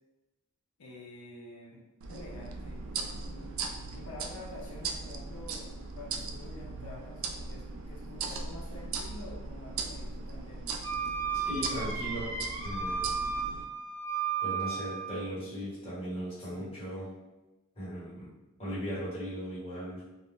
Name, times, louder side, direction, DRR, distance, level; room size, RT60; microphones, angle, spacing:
voice 1, 0.8-1.8 2.1-3.6 3.9-5.7 5.9-10.6 16.4-16.7, left 2 dB, 75° left, -3 dB, 0.5 m, -48 dB
sound 1, 2.0-13.6, right 4 dB, 65° right, 0.3 m, -39 dB
Wind instrument woodwind instrument, 10.8-15.2, right 5 dB, 50° right, 0.8 m, -34 dB
voice 2, 11.3-12.3 12.6-13.1 14.4-17.1 17.8-18.3 18.6-20.0, equal, 25° left, -10 dB, 1.1 m, -38 dB
2.4 x 2.1 x 3.4 m, 1.0 s
head